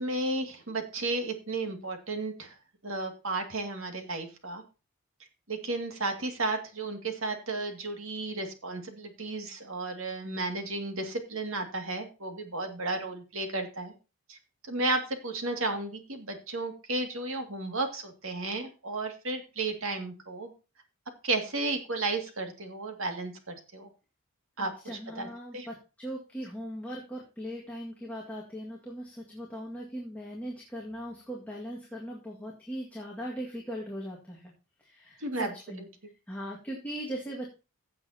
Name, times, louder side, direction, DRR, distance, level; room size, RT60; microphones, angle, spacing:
voice 1, 0.0-2.5 2.8-4.6 5.5-13.9 14.3-14.4 14.7-20.5 21.2-23.9 24.6-25.3 25.5-25.7 35.2-35.9, right 2 dB, 65° right, 4 dB, 2.2 m, -33 dB
voice 2, 24.6-34.5 34.8-35.9 36.3-37.5, equal, 5° left, -3 dB, 1.9 m, -39 dB
16.0 x 7.6 x 2.9 m, 0.30 s
head